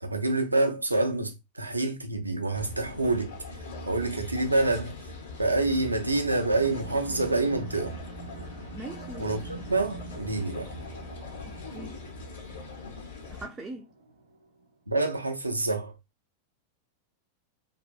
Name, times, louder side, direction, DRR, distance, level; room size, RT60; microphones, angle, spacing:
voice 1, 0.0-3.4 3.9-5.0 5.4-8.0 9.2-10.7 14.9-15.9, right 2 dB, 85° right, 0.5 m, -27 dB
sound 1, 2.5-13.5, left 3 dB, 65° left, 0.9 m, -41 dB
sound 2, 6.5-14.7, right 5 dB, 65° right, 0.9 m, -46 dB
voice 2, 8.7-9.3 11.4-12.0 13.3-13.9, right 2 dB, 20° right, 0.4 m, -41 dB
2.7 x 2.5 x 2.2 m
figure-of-eight pair, 90°, 0 cm